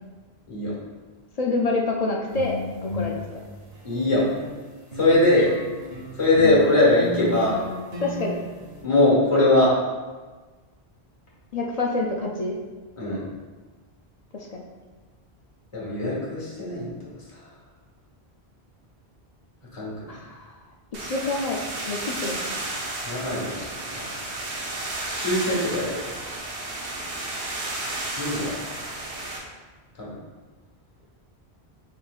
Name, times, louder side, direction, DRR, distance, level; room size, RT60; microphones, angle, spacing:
voice 1, 1.4-2.6 2.8-3.2 8.0-8.4 11.5-12.6 14.3-14.6 20.1-20.5 20.9-21.6 21.8-22.6, left 3 dB, 50° left, -1 dB, 0.5 m, -27 dB
sound 1, 2.3-4.5 4.9-8.8, left 1 dB, 70° right, 1.3 m, -34 dB
voice 2, 3.8-4.3 4.9-5.6 6.1-7.6 8.8-9.7 13.0-13.2 15.7-16.9 17.3-17.4 19.7-20.2 23.0-23.6 23.9-24.0 25.1-26.0 28.2-28.5 30.0-30.2, left 2 dB, 30° left, -6 dB, 1.3 m, -21 dB
sound 2, 20.9-29.4, right 2 dB, 90° right, 1.1 m, -32 dB
5.4 x 3.6 x 2.3 m, 1.3 s
omnidirectional pair, 1.1 m